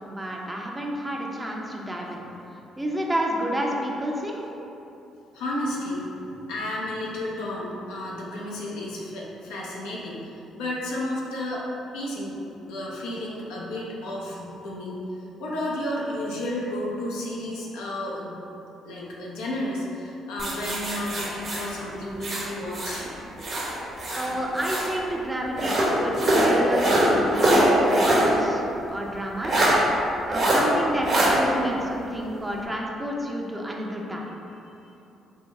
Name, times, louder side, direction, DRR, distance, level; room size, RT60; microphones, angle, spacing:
voice 1, 0.1-2.2 2.8-4.4 24.2-28.6 28.9-29.7 30.2-34.4, equal, 15° right, -1 dB, 0.6 m, -30 dB
voice 2, 5.3-11.6 11.9-15.0 15.4-18.4 18.8-23.1, left 1 dB, 80° left, -5 dB, 0.7 m, -32 dB
sound 1, 20.4-23.0 23.4-24.9 25.6-28.3 28.6-28.7 29.4-29.7 30.3-30.6 31.0-31.3, right 1 dB, 55° right, 1.1 m, -22 dB
3.5 x 2.2 x 4.1 m, 2.9 s
hypercardioid pair, 55°, 0 cm